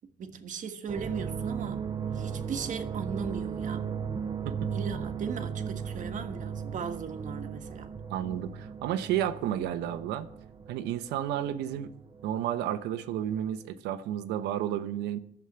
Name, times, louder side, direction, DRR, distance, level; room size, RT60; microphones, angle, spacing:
voice 1, 0.2-1.8 2.1-3.9 4.7-7.9, right 6 dB, 50° right, 1.5 m, -37 dB
sound 1, 0.9-13.0 13.3-13.7, right 7 dB, 25° right, 1.0 m, -37 dB
voice 2, 8.1-10.3 10.7-11.9 12.2-15.2, right 11 dB, 90° right, 1.0 m, -31 dB
11.5 x 7.4 x 8.8 m
cardioid pair, 110°, 17 cm